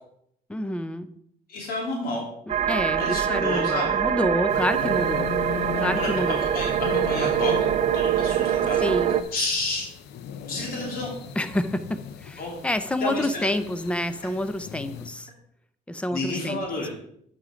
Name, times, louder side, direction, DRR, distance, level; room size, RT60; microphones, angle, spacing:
voice 1, 0.5-1.1 2.7-5.3 5.8-6.4 8.8-9.2 11.4-15.3 15.9-16.6, left 1 dB, 5° left, 12 dB, 0.6 m, -28 dB
voice 2, 1.5-2.3 3.0-4.0 5.7-6.1 6.5-7.7 7.9-8.9 9.3-9.9 10.5-11.1 12.4-12.6 13.0-13.5 16.1-16.9, left 2 dB, 60° left, -1 dB, 2.8 m, -30 dB
sound 1, 2.5-9.2, right 10 dB, 40° right, 0.6 m, -24 dB
sound 2, 4.5-15.1, left 8 dB, 80° left, 0.7 m, -37 dB
8.4 x 6.1 x 5.0 m, 0.70 s
cardioid pair, 110°, 17 cm